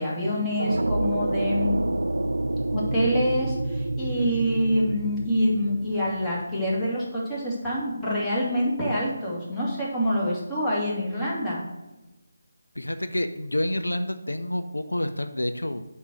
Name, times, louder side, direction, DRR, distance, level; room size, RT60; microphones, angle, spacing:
voice 1, 0.0-1.7 2.7-11.6, equal, 10° left, -7 dB, 2.2 m, -26 dB
sound 1, 0.6-6.4, right 1 dB, 80° right, 0.3 m, -28 dB
voice 2, 12.8-15.8, left 1 dB, 85° left, 9 dB, 0.5 m, -28 dB
8.1 x 3.9 x 6.1 m, 1.1 s
figure-of-eight pair, 155°, 0 cm